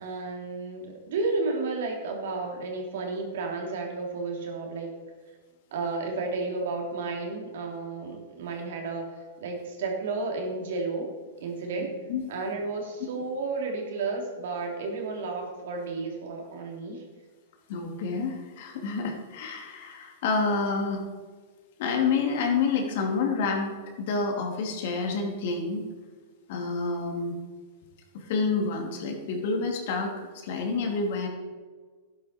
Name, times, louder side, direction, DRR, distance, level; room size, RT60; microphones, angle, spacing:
voice 1, 0.0-4.9 5.7-11.1 11.4-11.9 12.3-17.0, right 3 dB, 70° right, 1 dB, 3.3 m, -32 dB
voice 2, 17.7-21.0 21.8-23.7 24.0-25.8 26.5-27.4 28.1-31.3, left 4 dB, 60° left, 2 dB, 2.8 m, -28 dB
12.0 x 10.5 x 4.5 m, 1.4 s
hypercardioid pair, 125°, 0 cm